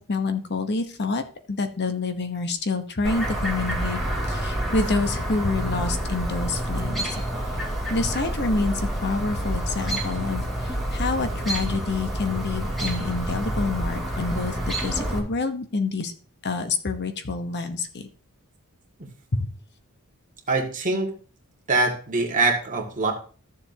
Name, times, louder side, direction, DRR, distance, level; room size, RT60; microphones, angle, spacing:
voice 1, 0.1-1.2 1.5-4.0 4.3-7.2 7.9-16.1 16.4-18.1 19.3-19.5, left 3 dB, 50° left, 7 dB, 1.0 m, -27 dB
Chirp tweet, 3.0-15.2, right 1 dB, ahead, 2.6 m, -28 dB
voice 2, 20.5-21.2 21.7-23.1, right 3 dB, 35° right, 0 dB, 2.1 m, -23 dB
14.0 x 7.1 x 2.8 m, 0.39 s
head